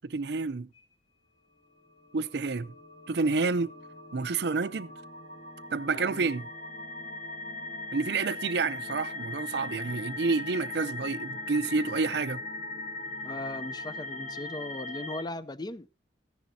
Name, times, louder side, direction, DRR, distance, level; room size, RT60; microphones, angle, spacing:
voice 1, 0.0-0.7 2.1-2.7 3.1-3.7 4.1-4.9 5.7-6.5 7.9-12.4, right 4 dB, 70° right, 0.6 m, -29 dB
sound 1, 2.0-15.2, left 2 dB, 45° left, 2.3 m, -39 dB
voice 2, 5.9-6.3 13.2-15.9, left 1 dB, 25° left, 0.6 m, -38 dB
14.5 x 10.5 x 2.7 m
head